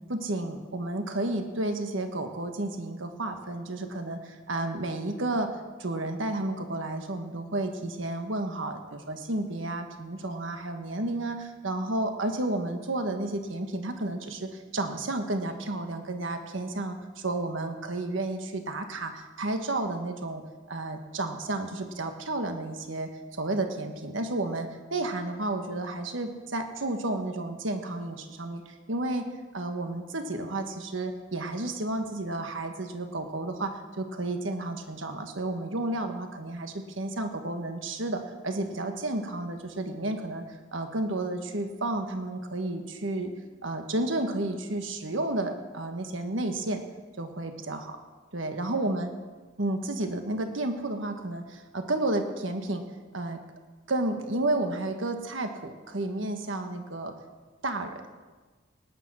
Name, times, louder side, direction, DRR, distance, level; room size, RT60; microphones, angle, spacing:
voice 1, 0.1-20.4 20.7-29.3 29.5-43.3 43.6-46.8 47.2-48.0 48.3-49.1 49.6-52.8 53.1-53.4 53.9-57.1 57.6-58.0, right 2 dB, 70° right, 6 dB, 1.5 m, -32 dB
18.5 x 9.8 x 6.3 m, 1.3 s
head